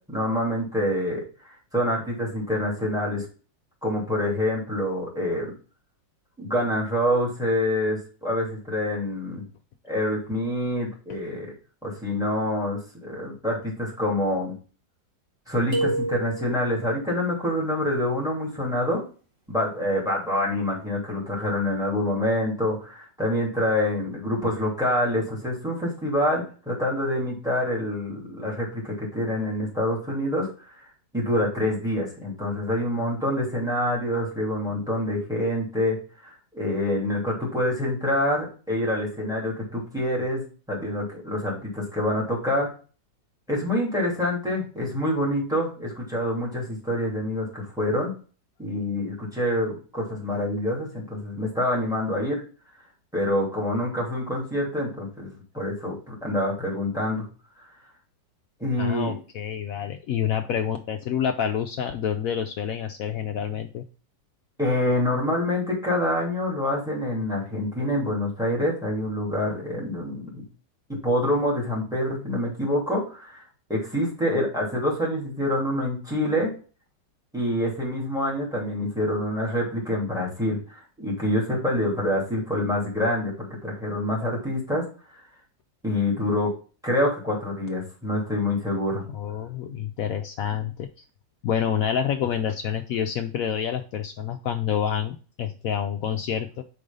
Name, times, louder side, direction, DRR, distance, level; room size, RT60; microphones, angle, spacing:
voice 1, 0.1-1.2 1.7-3.2 3.8-5.5 6.4-9.4 9.9-11.5 11.8-14.5 15.5-19.0 19.5-30.5 30.8-30.9 31.1-36.0 36.2-42.7 43.5-48.1 48.6-52.4 53.1-57.2 58.6-59.2 64.6-70.4 70.9-73.4 73.7-76.5 77.3-84.8 85.8-86.5 86.8-89.0, left 1 dB, ahead, -3 dB, 2.8 m, -26 dB
sound 1, 15.7-16.8, right 2 dB, 30° right, 1.8 m, -28 dB
voice 2, 58.8-63.8 89.1-90.9 91.4-96.6, left 8 dB, 75° left, 6 dB, 0.8 m, -28 dB
5.0 x 4.7 x 5.2 m, 0.38 s
omnidirectional pair, 2.0 m